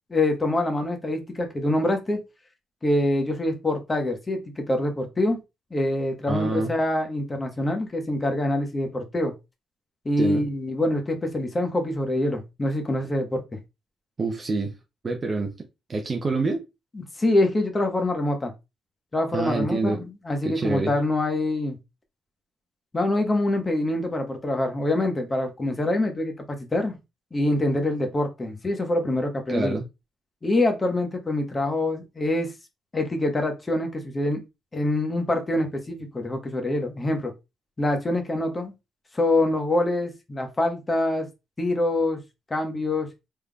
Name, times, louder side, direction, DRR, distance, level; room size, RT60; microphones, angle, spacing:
voice 1, 0.1-2.2 2.8-5.4 5.7-9.3 10.0-13.6 16.9-18.5 19.1-21.8 22.9-27.0 27.3-29.7 30.4-32.5 32.9-34.4 34.7-37.3 37.8-38.7 39.1-41.3 41.6-42.2 42.5-43.1, left 1 dB, 25° left, 1.1 m, -25 dB
voice 2, 6.3-6.7 10.2-10.4 14.2-14.7 15.0-15.5 15.9-16.6 19.3-20.0 20.4-21.0 29.5-29.8, right 3 dB, 35° right, 0.6 m, -26 dB
3.6 x 3.3 x 2.3 m
cardioid pair, 90°, 0 cm